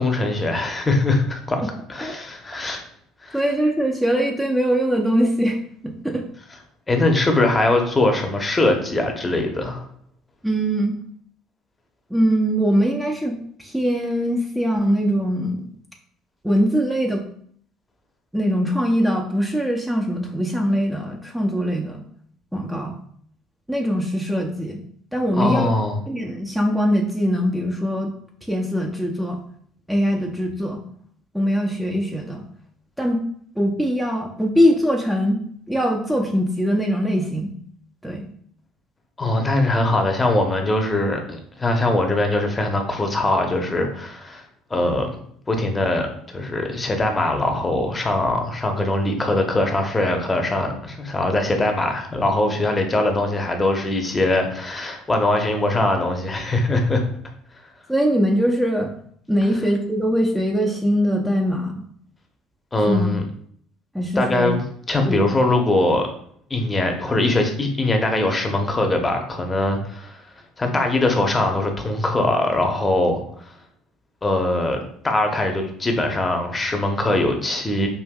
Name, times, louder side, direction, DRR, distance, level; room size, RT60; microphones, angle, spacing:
voice 1, 0.0-1.6 1.9-2.8 3.2-3.4 6.9-9.8 25.4-26.0 39.2-44.4 44.7-45.1 45.5-57.0 62.7-63.2 64.2-66.1 66.5-70.2 70.6-73.5 74.2-77.9, left 2 dB, 25° left, 3 dB, 0.9 m, -21 dB
voice 2, 3.3-5.6 5.8-6.2 10.4-10.9 12.1-15.6 16.4-17.2 18.3-22.0 22.5-23.0 23.7-24.8 25.1-25.7 26.1-28.1 28.5-29.4 29.9-30.8 31.3-32.4 33.0-33.2 33.6-35.4 35.7-37.5 38.0-38.3 57.9-58.9 59.3-61.8 62.9-63.1 63.9-64.5 65.1-65.3, equal, 5° right, 0 dB, 0.6 m, -22 dB
5.3 x 2.5 x 2.3 m, 0.63 s
hypercardioid pair, 60°, 0 cm